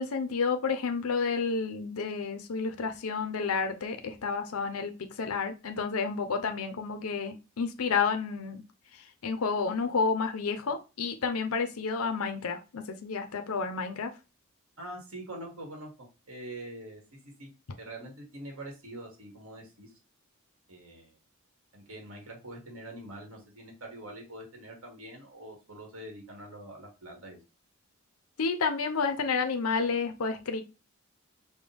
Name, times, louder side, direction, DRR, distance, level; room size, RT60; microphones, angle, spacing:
voice 1, 0.0-8.6 9.2-14.1 28.4-30.6, left 5 dB, 85° left, 0.6 m, -30 dB
voice 2, 14.8-15.9 16.3-17.0 17.4-17.5 17.8-19.9 20.7-21.2 21.7-27.4, right 1 dB, 80° right, 1.6 m, -44 dB
5.2 x 2.2 x 3.4 m
head